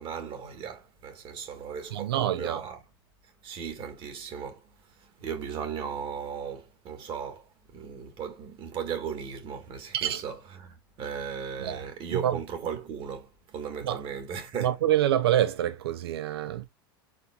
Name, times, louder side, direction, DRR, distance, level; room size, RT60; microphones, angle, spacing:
voice 1, 0.0-2.8 3.4-14.7, right 7 dB, 40° right, 1.5 m, -37 dB
voice 2, 1.9-2.6 9.9-10.2 11.6-11.8 12.1-12.4 13.8-14.0 14.6-16.6, right 12 dB, 80° right, 0.8 m, -26 dB
5.1 x 3.8 x 2.2 m
hypercardioid pair, 105°, 13 cm